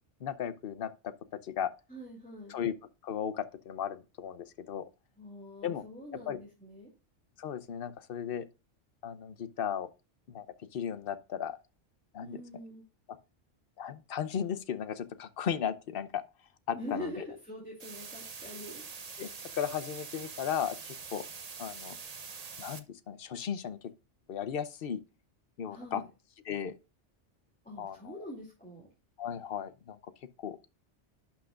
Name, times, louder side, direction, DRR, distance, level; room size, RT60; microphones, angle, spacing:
voice 1, 0.2-1.1 1.4-1.7 2.5-2.7 3.0-4.9 5.6-5.8 6.1-6.4 7.4-8.5 9.0-9.9 10.3-10.5 10.7-11.6 12.1-12.4 13.8-16.2 16.7-17.1 19.2-19.3 19.5-21.2 21.6-22.0 22.6-23.8 24.3-25.0 25.6-26.0 26.4-26.7 27.8-28.1 29.2-30.1 30.4-30.6, left 8 dB, 55° left, 0.9 m, -35 dB
voice 2, 1.9-2.6 5.2-6.9 12.2-12.8 16.7-18.8 25.7-26.1 27.6-28.9, left 1 dB, 5° left, 2.8 m, -44 dB
sound 1, 17.8-22.8, right 5 dB, 40° right, 0.8 m, -44 dB
11.5 x 6.0 x 2.5 m
omnidirectional pair, 1.2 m